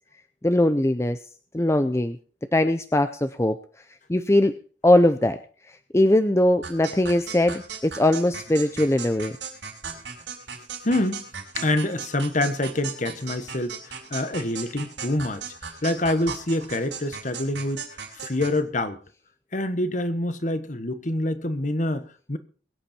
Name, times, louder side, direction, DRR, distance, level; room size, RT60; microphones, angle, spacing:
voice 1, 0.4-1.2 1.5-2.2 2.5-3.6 4.1-4.5 4.8-5.4 5.9-9.3, left 1 dB, 15° left, 0.6 m, -20 dB
sound 1, 6.6-18.6, right 6 dB, 80° right, 5.2 m, -37 dB
voice 2, 10.8-11.2 11.6-15.4 15.8-17.8 18.1-19.0 19.5-22.4, left 1 dB, 45° left, 1.3 m, -26 dB
22.5 x 8.5 x 4.4 m
head